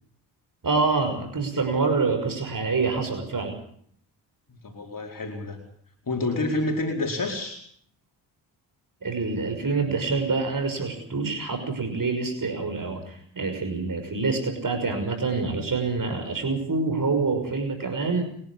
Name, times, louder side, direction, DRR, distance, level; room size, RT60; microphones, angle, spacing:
voice 1, 0.6-3.5 9.0-18.2, right 4 dB, 40° right, 6 dB, 6.0 m, -26 dB
voice 2, 4.6-5.6 6.1-7.6, left 2 dB, 40° left, 2 dB, 4.7 m, -28 dB
29.5 x 11.5 x 8.6 m, 0.63 s
supercardioid pair, 50°, 48 cm